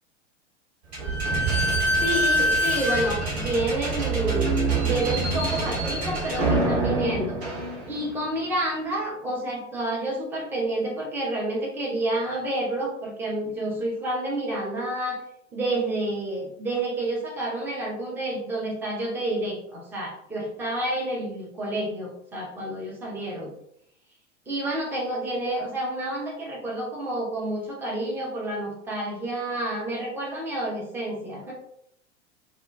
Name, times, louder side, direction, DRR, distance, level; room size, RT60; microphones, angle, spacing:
Slam / Squeak, 0.9-8.2, right 1 dB, 60° right, 1.1 m, -25 dB
voice 1, 2.0-7.6 7.9-15.2 15.5-23.5 24.5-31.5, right 1 dB, 5° right, -3 dB, 0.6 m, -29 dB
2.4 x 2.2 x 3.2 m, 0.73 s
figure-of-eight pair, 90°, 36 cm